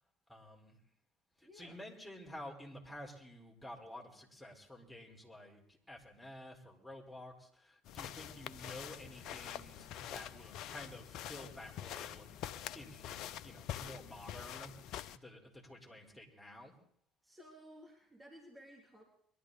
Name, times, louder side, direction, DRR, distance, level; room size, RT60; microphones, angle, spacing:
voice 1, 0.3-0.8 1.4-12.3 12.7-14.8 15.1-16.7, left 1 dB, 5° left, -1 dB, 4.7 m, -51 dB
voice 2, 1.4-1.8 17.2-19.0, equal, 15° right, 0 dB, 3.0 m, -56 dB
sound 1, 7.9-15.2, left 11 dB, 60° left, 0.6 m, -46 dB
23.0 x 12.5 x 4.2 m, 0.64 s
hypercardioid pair, 60°, 0 cm